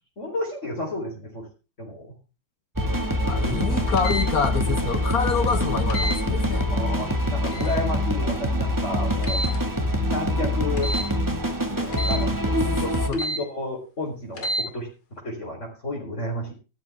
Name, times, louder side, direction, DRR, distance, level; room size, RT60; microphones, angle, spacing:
voice 1, 0.2-1.5 1.8-2.1 3.4-3.8 6.7-9.4 10.1-10.9 12.1-16.5, left 2 dB, 35° left, 4.5 m, -31 dB
sound 1, 2.8-13.1, equal, 10° right, 1.8 m, -25 dB
voice 2, 3.3-6.7 11.7-12.6 13.1-13.2, left 6 dB, 55° left, 1.2 m, -27 dB
sound 2, 4.0-4.3 5.9-6.2 7.5-7.8 9.2-9.6 10.8-11.1 11.9-12.2 13.1-13.4 14.3-14.7, equal, 85° left, 3.1 m, -29 dB
13.5 x 13.5 x 3.6 m
omnidirectional pair, 2.3 m